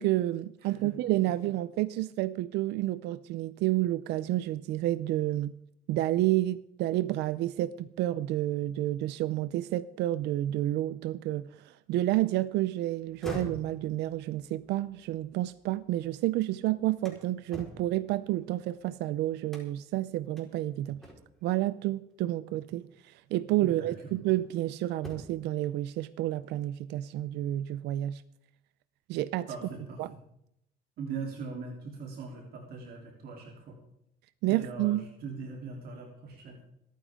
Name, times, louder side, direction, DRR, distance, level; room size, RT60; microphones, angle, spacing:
voice 1, 0.0-5.5 5.9-21.0 21.4-28.2 29.1-29.5 30.0-30.1 34.4-35.0, right 15 dB, 85° right, 0.6 m, -30 dB
voice 2, 0.6-0.9 23.6-24.1 29.5-30.2 31.0-33.8 34.4-36.6, right 4 dB, 65° right, 3.5 m, -41 dB
sound 1, 13.0-16.1 16.5-18.9 19.5-20.0 20.4-20.5 21.0-21.5 22.8-22.9 23.5-24.6 24.9-25.5, left 1 dB, ahead, 4.5 m, -46 dB
26.5 x 9.5 x 3.7 m
cardioid pair, 110°, 17 cm